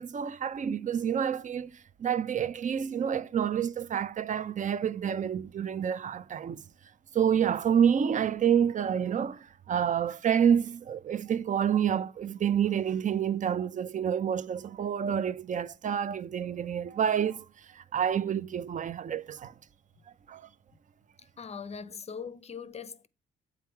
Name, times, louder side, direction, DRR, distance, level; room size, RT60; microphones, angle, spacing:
voice 1, 0.0-6.6 7.1-19.5 20.3-20.5, right 8 dB, 40° right, 0.5 m, -28 dB
voice 2, 21.4-23.1, left 6 dB, 35° left, 0.6 m, -41 dB
8.3 x 3.3 x 4.5 m
cardioid pair, 90°, 20 cm